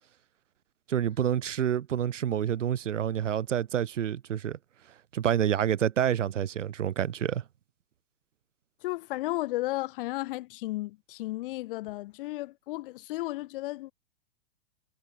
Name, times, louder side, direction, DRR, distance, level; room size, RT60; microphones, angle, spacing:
voice 1, 0.9-4.6 5.1-7.4, right 10 dB, 80° right, 6.5 m, -28 dB
voice 2, 8.8-13.9, left 18 dB, 45° left, 2.8 m, -34 dB
hypercardioid pair, 155°, 36 cm